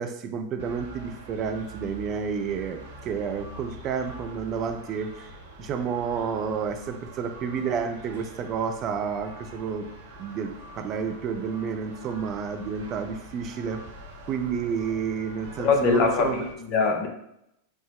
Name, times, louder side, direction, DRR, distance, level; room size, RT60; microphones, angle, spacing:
voice 1, 0.0-5.3 5.6-9.9 10.2-13.8 14.2-16.4, right 6 dB, 35° right, 6 dB, 0.4 m, -30 dB
sound 1, 0.6-16.5, right 1 dB, 60° right, 0.8 m, -44 dB
voice 2, 15.6-17.1, left 4 dB, 40° left, 2 dB, 0.7 m, -22 dB
4.8 x 2.1 x 3.4 m, 0.80 s
figure-of-eight pair, 90°, 0 cm